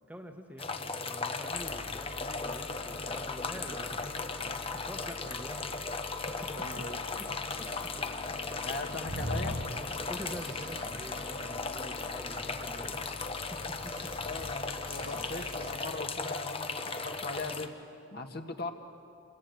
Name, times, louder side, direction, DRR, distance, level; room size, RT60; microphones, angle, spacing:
voice 1, 0.1-6.7 7.2-7.3 7.6-7.9 8.3-8.4 10.1-13.0 13.5-14.3, equal, 5° right, 4 dB, 1.2 m, -46 dB
sound 1, 0.6-17.7, left 4 dB, 25° left, 1.1 m, -37 dB
sound 2, 1.5-15.8, left 2 dB, 80° left, 1.7 m, -47 dB
voice 2, 6.5-7.2 8.6-9.6 14.2-17.8 18.1-18.7, left 3 dB, 45° left, 5 dB, 1.7 m, -39 dB
sound 3, 9.0-10.9 13.7-15.7, equal, 45° right, 1.6 m, -41 dB
28.0 x 22.0 x 9.4 m, 2.5 s
head